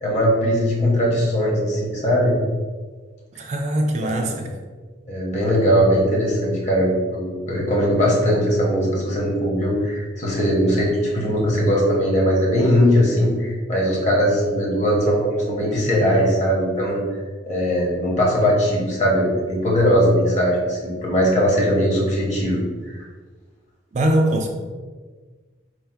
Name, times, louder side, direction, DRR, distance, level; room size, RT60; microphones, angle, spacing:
voice 1, 0.0-2.3 4.0-4.4 5.1-17.0 17.5-22.9, equal, 35° left, -3 dB, 1.1 m, -20 dB
voice 2, 3.4-4.5 23.9-24.5, right 1 dB, 35° right, 3 dB, 0.3 m, -21 dB
4.4 x 2.1 x 4.5 m, 1.4 s
head